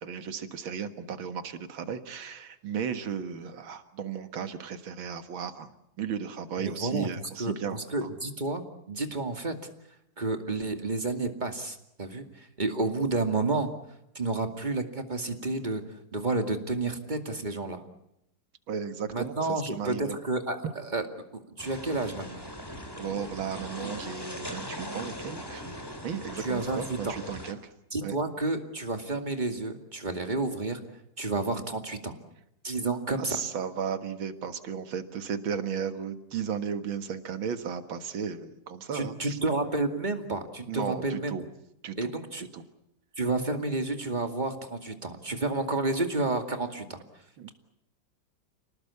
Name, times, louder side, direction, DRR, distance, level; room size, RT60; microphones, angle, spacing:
voice 1, 0.0-5.7 6.0-8.1 18.7-20.2 23.0-25.7 26.0-27.6 28.0-28.2 33.3-39.4 40.7-41.4 41.8-42.1 42.4-42.6 47.4-47.5, right 7 dB, 90° right, 9 dB, 2.4 m, -35 dB
voice 2, 6.6-7.1 7.4-9.5 10.2-13.7 14.1-15.8 16.1-17.8 19.1-21.1 21.6-22.4 26.4-27.1 27.9-30.8 31.2-32.1 32.6-33.4 38.9-41.3 42.0-42.5 43.2-47.0, right 2 dB, 25° right, 6 dB, 2.4 m, -30 dB
water movements, 21.6-27.5, equal, 10° left, 3.4 m, -40 dB
28.5 x 19.0 x 8.4 m, 0.82 s
omnidirectional pair, 2.1 m